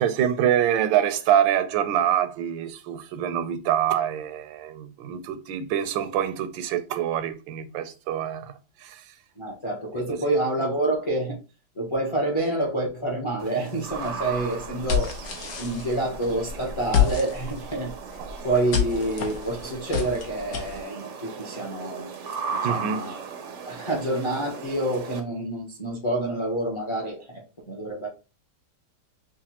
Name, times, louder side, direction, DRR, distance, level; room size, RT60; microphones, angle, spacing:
voice 1, 0.0-8.5 8.8-9.0 10.1-10.2 18.2-18.3 22.6-23.0, right 10 dB, 90° right, 1.3 m, -25 dB
voice 2, 9.4-11.4 11.7-15.1 15.6-18.2 18.4-22.1 22.5-23.2 23.7-28.1, right 2 dB, 30° left, 0.5 m, -28 dB
sound 1, 13.4-25.2, right 5 dB, 70° right, 0.7 m, -37 dB
sound 2, 13.9-20.8, left 9 dB, 65° left, 1.4 m, -29 dB
6.1 x 2.2 x 2.8 m
omnidirectional pair, 2.0 m